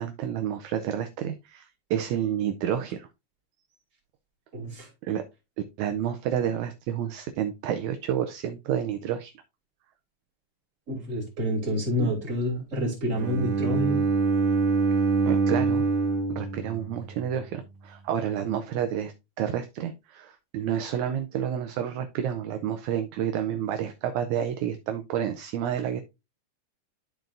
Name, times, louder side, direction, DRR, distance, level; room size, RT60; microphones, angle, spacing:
voice 1, 0.0-3.1 5.0-5.2 5.8-9.3 12.0-12.1 15.2-15.9 16.3-26.0, right 9 dB, 75° right, 1.9 m, -30 dB
voice 2, 4.5-4.9 10.9-14.0, equal, 25° right, 3.2 m, -28 dB
Bowed string instrument, 13.1-17.2, right 4 dB, 60° right, 2.0 m, -25 dB
12.5 x 4.5 x 2.5 m
omnidirectional pair, 3.7 m